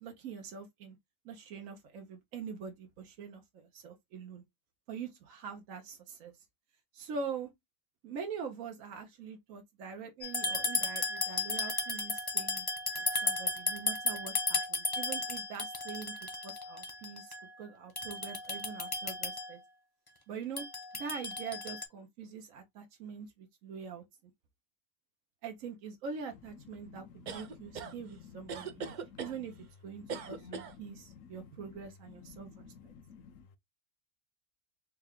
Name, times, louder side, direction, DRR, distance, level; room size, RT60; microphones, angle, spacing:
voice 1, 0.0-1.0 1.2-4.4 4.9-6.3 6.9-7.5 8.0-12.7 13.0-16.1 16.4-19.6 20.3-20.6 21.0-24.0 25.4-28.8 29.2-29.5 29.8-32.9, right 6 dB, 80° right, 1.2 m, -44 dB
sound 1, 10.2-17.5 18.0-19.6 20.6-21.8, left 3 dB, 25° left, 0.6 m, -34 dB
voice 2, 26.8-29.4 30.0-33.6, left 6 dB, 75° left, 1.0 m, -53 dB
sound 2, 27.3-27.9 28.5-29.4 30.1-30.7, right 5 dB, 60° right, 0.5 m, -40 dB
4.6 x 2.2 x 3.5 m
omnidirectional pair, 1.4 m